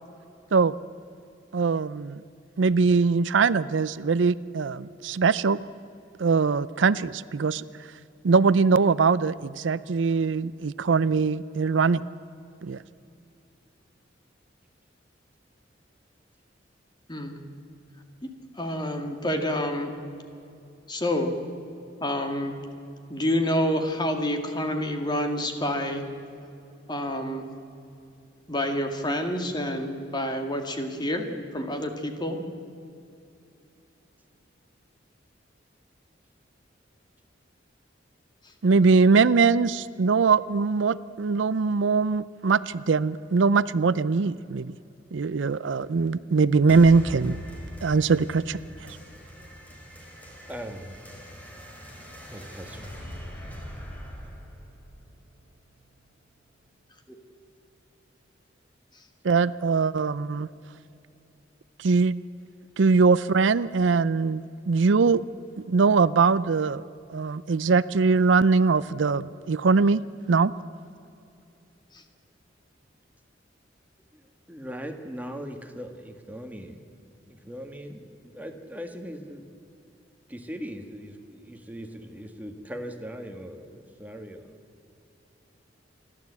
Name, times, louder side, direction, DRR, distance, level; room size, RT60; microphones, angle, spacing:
voice 1, 1.5-2.2 2.6-5.6 6.2-7.6 8.2-12.0 12.6-12.8 38.6-44.7 45.1-47.4 47.8-49.0 59.2-60.5 61.8-62.2 62.8-65.2 65.7-66.8 67.1-70.0 70.3-70.5, right 4 dB, 75° right, 17 dB, 0.5 m, -22 dB
voice 2, 18.6-19.9 20.9-21.4 22.0-22.6 23.1-26.0 26.9-27.5 28.5-31.3 31.5-32.4 71.9-72.0, left 1 dB, 25° left, 5 dB, 2.1 m, -28 dB
sound 1, 46.7-55.7, equal, 10° left, 3.6 m, -42 dB
voice 3, 50.4-50.9 52.3-52.9 57.1-57.2 74.1-76.8 77.2-79.5 80.3-84.5, equal, 10° right, 5 dB, 1.7 m, -40 dB
28.5 x 12.0 x 8.3 m, 2.7 s
head